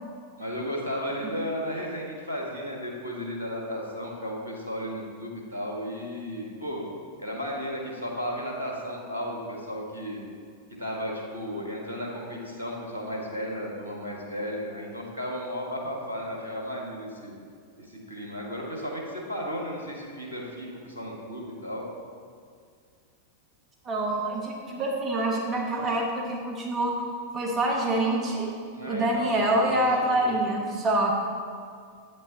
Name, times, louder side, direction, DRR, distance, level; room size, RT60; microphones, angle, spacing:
voice 1, 0.4-6.8 7.2-10.2 10.8-17.3 17.8-21.9 28.7-29.4 29.8-30.4, equal, 80° right, -1 dB, 1.4 m, -34 dB
voice 2, 23.8-27.0 27.3-28.5 28.9-31.1, right 1 dB, 25° right, -1 dB, 1.1 m, -26 dB
9.2 x 8.0 x 2.8 m, 2.2 s
figure-of-eight pair, 90°, 0 cm